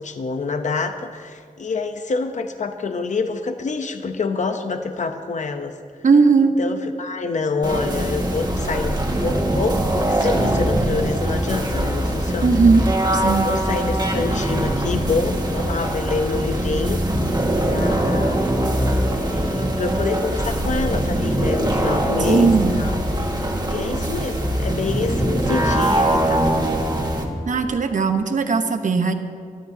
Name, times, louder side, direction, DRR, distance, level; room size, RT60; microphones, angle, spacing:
voice 1, 0.0-5.7 6.4-12.6 13.2-18.5 19.1-23.0 23.7-26.5, left 4 dB, 60° left, 7 dB, 0.7 m, -27 dB
voice 2, 6.0-6.6 12.4-12.8 13.1-13.5 22.3-22.7 27.5-29.1, right 4 dB, 65° right, 7 dB, 1.0 m, -17 dB
sound 1, 7.6-27.2, right 1 dB, 30° right, 1.6 m, -22 dB
22.0 x 13.0 x 2.8 m, 2.2 s
wide cardioid pair, 125°, 14 cm